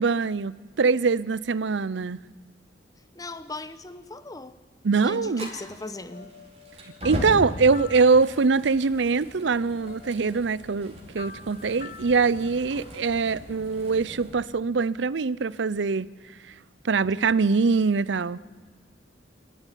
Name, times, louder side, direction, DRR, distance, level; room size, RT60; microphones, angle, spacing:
voice 1, 0.0-2.2 4.8-5.5 7.0-16.1 16.8-18.4, right 4 dB, 70° right, 19 dB, 0.6 m, -23 dB
voice 2, 3.1-4.6 5.0-6.3, left 2 dB, 20° left, 13 dB, 1.0 m, -38 dB
Fire, 5.4-14.3, equal, 35° right, 5.2 m, -39 dB
sound 1, 6.1-8.9 9.3-9.4 9.6-13.0, left 4 dB, 45° left, 1.2 m, -47 dB
26.5 x 14.0 x 10.0 m, 1.4 s
head